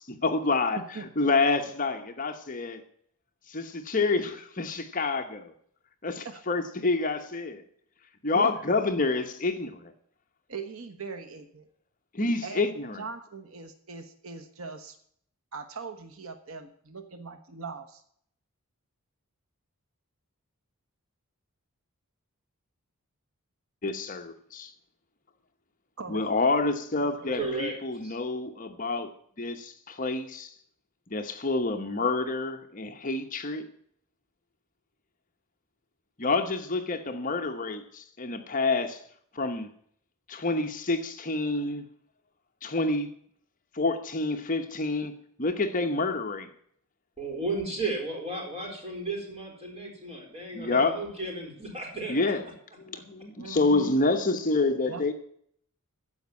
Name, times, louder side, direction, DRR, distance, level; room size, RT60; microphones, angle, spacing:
voice 1, 0.0-2.8 3.5-5.5 6.0-7.6 8.2-9.9 12.1-13.0 23.8-24.7 26.1-29.1 29.4-30.5 31.1-33.7 36.2-39.0 39.3-39.7 40.3-41.9 42.6-43.2 43.7-45.1 45.4-46.5 50.5-50.9 52.1-52.4 52.8-55.1, left 3 dB, 35° left, 6 dB, 1.0 m, -28 dB
voice 2, 0.8-1.1 6.2-6.4 8.3-8.5 10.5-11.6 12.4-12.6 13.0-15.0 15.5-18.0 26.0-26.3 27.2-27.3 53.4-54.0 54.9-55.1, right 4 dB, 70° right, 7 dB, 1.1 m, -40 dB
voice 3, 27.3-28.2 47.2-52.3 52.9-53.0, right 2 dB, 25° right, 0 dB, 4.3 m, -34 dB
14.5 x 5.3 x 9.6 m, 0.65 s
head